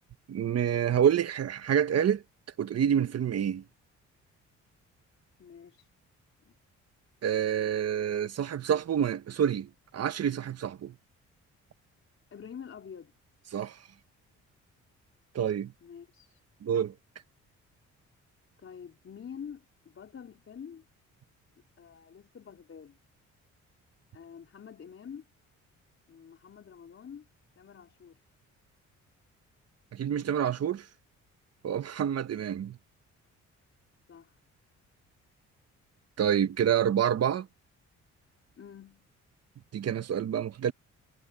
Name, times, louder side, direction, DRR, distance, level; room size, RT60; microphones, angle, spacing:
voice 1, 0.3-2.2 2.6-3.6 7.2-10.9 13.5-13.8 15.3-15.7 16.6-16.9 29.9-30.9 31.6-32.8 36.2-37.5 39.7-40.7, right 9 dB, 55° right, 1.5 m, -27 dB
voice 2, 5.4-5.9 6.4-6.6 12.3-13.1 15.8-16.4 18.6-20.8 21.8-23.0 24.1-25.3 26.1-27.3 27.6-28.2 34.1-34.4 38.6-39.1, left 7 dB, 45° left, 4.1 m, -47 dB
cardioid pair, 90°, 30 cm